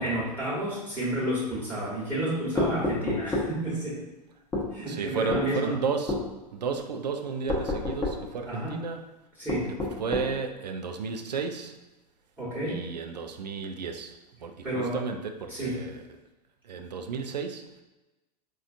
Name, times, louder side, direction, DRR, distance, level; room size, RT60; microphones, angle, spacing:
voice 1, 0.0-4.0 4.7-5.7 8.5-8.8 9.4-9.7 12.4-12.8 14.6-15.0 15.5-15.8, right 1 dB, 5° right, -8 dB, 1.2 m, -31 dB
sound 1, 2.6-3.5 4.5-4.7 5.3-5.5 6.1-6.3 7.5-8.2 9.5-10.3, left 2 dB, 15° left, 0.7 m, -28 dB
voice 2, 4.6-6.2 6.5-9.1 9.7-11.7 12.7-14.1 14.4-16.0 16.6-17.6, right 5 dB, 80° right, 6 dB, 0.4 m, -33 dB
4.4 x 2.4 x 2.5 m, 1.1 s
figure-of-eight pair, 95°, 21 cm